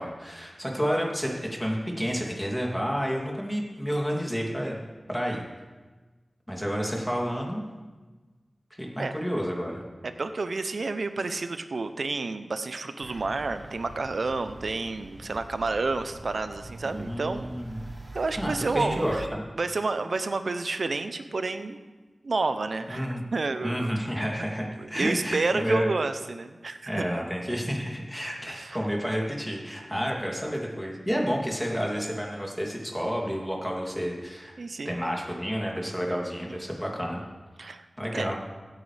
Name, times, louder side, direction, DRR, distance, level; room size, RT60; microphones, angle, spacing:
voice 1, 0.0-4.8 5.1-5.4 6.5-7.6 8.8-9.8 16.8-17.8 18.4-19.4 22.9-23.2 23.6-25.9 26.9-34.5 34.8-37.2 38.0-38.4, equal, 5° left, -1 dB, 2.8 m, -30 dB
voice 2, 10.0-17.5 18.1-19.2 19.6-21.8 22.2-23.9 24.4-24.5 24.8-27.0 28.5-28.8 34.6-34.9 36.5-36.6 37.6-37.9 38.1-38.3, right 3 dB, 75° right, 9 dB, 0.7 m, -30 dB
sound 1, 13.0-19.3, right 2 dB, 50° right, 1.0 m, -44 dB
16.0 x 9.6 x 3.4 m, 1.3 s
cardioid pair, 40°, 0 cm